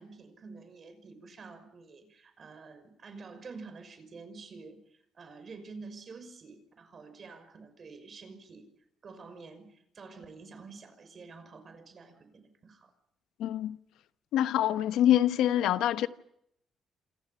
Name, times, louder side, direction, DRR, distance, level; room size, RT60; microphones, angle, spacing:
voice 1, 0.0-8.7 9.0-12.9, right 4 dB, 45° right, 5.8 m, -48 dB
voice 2, 13.4-13.8 14.3-16.1, left 11 dB, 85° left, 1.1 m, -25 dB
29.0 x 27.0 x 5.7 m
cardioid pair, 90°, 0 cm